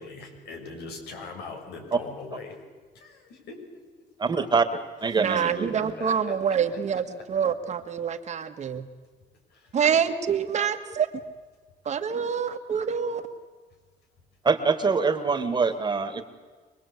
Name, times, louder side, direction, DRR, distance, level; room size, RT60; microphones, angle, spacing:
voice 1, 0.0-2.6 2.9-3.6 5.1-6.6 6.9-7.0 9.5-9.7, left 4 dB, 75° left, 3 dB, 6.7 m, -41 dB
voice 2, 4.2-4.7 5.0-5.9 14.4-16.2, right 5 dB, 25° right, 8 dB, 2.2 m, -24 dB
voice 3, 5.2-8.9 9.7-11.1 11.9-13.2, right 7 dB, 45° right, 7 dB, 1.8 m, -26 dB
26.0 x 20.5 x 8.4 m, 1.4 s
cardioid pair, 110°, 17 cm